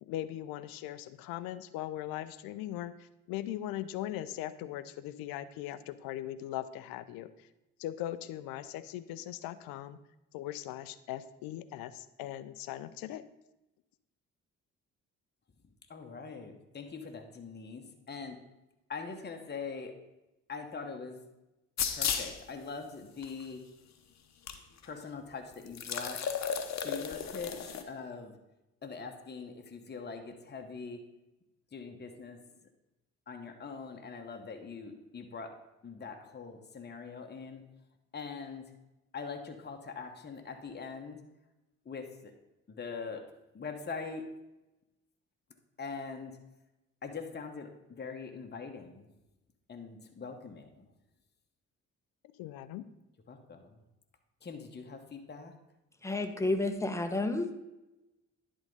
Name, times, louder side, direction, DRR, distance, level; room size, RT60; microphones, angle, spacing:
voice 1, 0.0-7.3 7.8-10.0 10.3-13.2 52.4-52.9, left 13 dB, 70° left, 15 dB, 0.6 m, -39 dB
voice 2, 15.9-18.4 18.9-20.0 20.5-21.2 21.9-23.7 24.8-26.2 26.8-28.3 28.8-31.0 31.7-32.4 33.3-35.5 35.8-37.6 38.1-38.7 39.1-41.2 41.8-42.3 42.7-43.2 43.5-44.2 45.8-46.4 47.0-49.1 49.7-50.9 53.3-53.8 54.4-55.5, left 5 dB, 30° left, 4 dB, 1.1 m, -42 dB
sound 1, 21.8-22.4 23.2-23.3 24.5-24.6 24.8-24.9 25.7-27.8, left 7 dB, 50° left, 0.9 m, -34 dB
voice 3, 56.0-57.5, left 2 dB, 10° left, 6 dB, 1.1 m, -31 dB
10.5 x 3.7 x 5.3 m, 0.96 s
hypercardioid pair, 45°, 36 cm